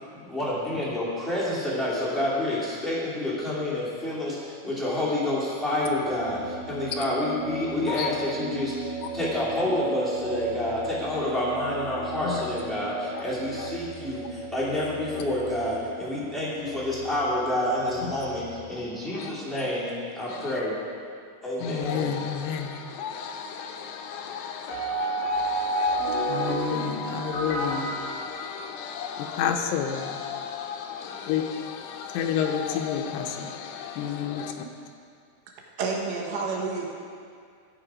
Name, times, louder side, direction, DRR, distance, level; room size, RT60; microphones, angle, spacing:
voice 1, 0.1-20.8 21.4-22.1, left 1 dB, ahead, -9 dB, 1.8 m, -28 dB
sound 1, 5.8-18.7, right 2 dB, 60° left, 1.9 m, -37 dB
voice 2, 7.9-8.3 9.0-9.1 12.2-12.4 13.1-13.2 13.6-13.7 18.0-18.3 19.1-19.3 20.3-20.6 21.6-34.7 36.3-36.4, left 7 dB, 80° left, 4 dB, 2.8 m, -31 dB
sound 2, 24.7-29.0, right 1 dB, 40° left, 2.3 m, -29 dB
voice 3, 35.8-36.9, right 4 dB, 80° right, 0 dB, 3.4 m, -29 dB
13.5 x 7.9 x 5.1 m, 2.2 s
omnidirectional pair, 5.1 m